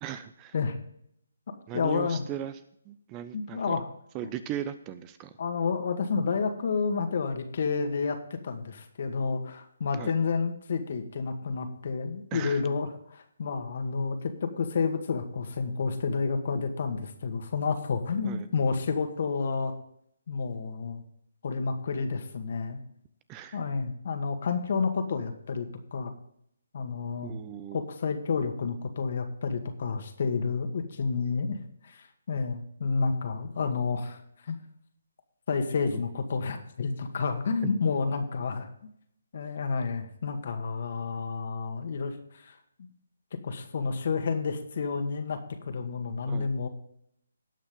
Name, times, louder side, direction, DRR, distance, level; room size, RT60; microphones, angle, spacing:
voice 1, 0.0-0.6 1.7-3.8 4.1-5.3 10.0-10.1 12.3-12.6 18.2-18.5 23.3-23.6 27.2-27.8 35.9-36.0 37.6-37.8 46.3-46.5, right 10 dB, 20° right, 13 dB, 0.7 m, -38 dB
voice 2, 1.5-2.2 3.3-3.9 5.4-19.7 20.3-21.0 21.4-22.8 23.5-26.1 26.7-27.3 27.7-31.6 31.8-34.2 34.5-34.6 35.5-38.7 39.3-42.9 43.4-46.7, left 5 dB, 55° left, 6 dB, 2.1 m, -30 dB
18.5 x 6.3 x 3.8 m, 0.70 s
hypercardioid pair, 150°, 0 cm